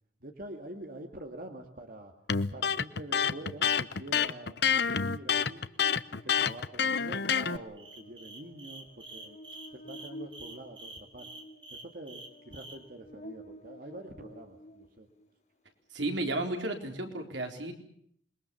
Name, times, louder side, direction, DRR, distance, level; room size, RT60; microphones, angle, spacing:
voice 1, 0.2-2.1 2.5-5.6 6.1-9.4 9.7-11.3 11.7-15.1, right 1 dB, 50° right, 5 dB, 2.3 m, -46 dB
Electric guitar, 2.3-7.6, left 7 dB, 65° left, 0.9 m, -28 dB
Buzz, 5.8-15.3, equal, 40° left, 1.9 m, -51 dB
sound 1, 7.8-12.8, right 2 dB, 25° right, 3.8 m, -47 dB
voice 2, 15.9-17.7, right 2 dB, 80° right, 4 dB, 4.0 m, -33 dB
27.5 x 22.0 x 7.0 m, 0.67 s
head